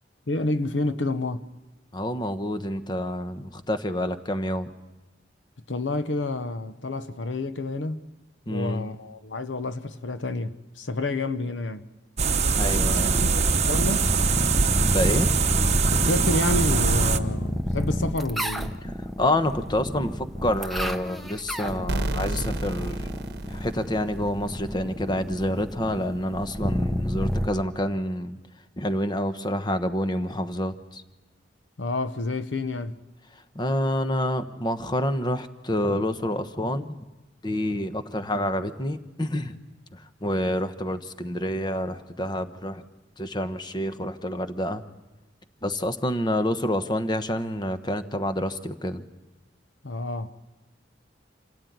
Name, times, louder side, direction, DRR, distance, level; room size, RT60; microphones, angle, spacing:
voice 1, 0.3-1.4 5.7-8.0 8.5-11.9 12.8-14.1 15.9-18.8 31.8-33.0 49.8-50.3, left 2 dB, 85° left, 1.0 m, -29 dB
voice 2, 1.9-4.7 8.5-8.9 12.5-13.2 14.9-15.3 18.8-18.9 19.2-23.1 23.5-28.4 28.8-31.0 33.5-37.0 37.4-39.6 39.9-42.8 43.2-44.8 45.6-49.0, left 1 dB, 25° left, 1.1 m, -28 dB
sound 1, 12.2-17.2, right 5 dB, 40° right, 1.0 m, -23 dB
sound 2, 12.8-27.5, equal, ahead, 0.9 m, -30 dB
sound 3, 21.9-24.6, right 2 dB, 65° right, 1.0 m, -31 dB
27.5 x 17.0 x 9.4 m
head